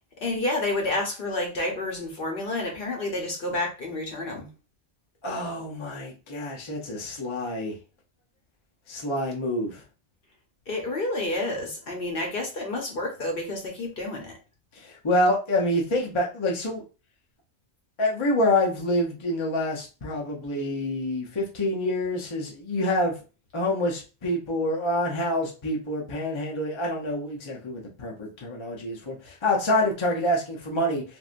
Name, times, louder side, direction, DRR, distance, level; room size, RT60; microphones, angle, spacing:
voice 1, 0.2-4.5 10.7-14.3, left 2 dB, 55° left, 0 dB, 1.0 m, -29 dB
voice 2, 5.2-7.7 8.9-9.8 14.8-16.8 18.0-23.1 23.5-31.0, left 1 dB, 30° left, -1 dB, 0.7 m, -27 dB
3.1 x 2.5 x 2.5 m, 0.33 s
omnidirectional pair, 1.2 m